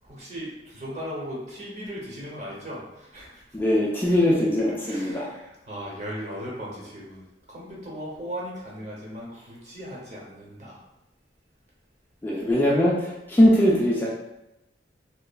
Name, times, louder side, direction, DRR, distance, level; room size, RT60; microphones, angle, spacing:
voice 1, 0.0-3.4 4.1-4.2 4.8-10.8 12.3-12.7, equal, 40° right, -4 dB, 0.7 m, -38 dB
voice 2, 3.5-5.3 12.2-14.1, equal, 10° left, -5 dB, 0.3 m, -21 dB
2.8 x 2.3 x 2.2 m, 0.91 s
head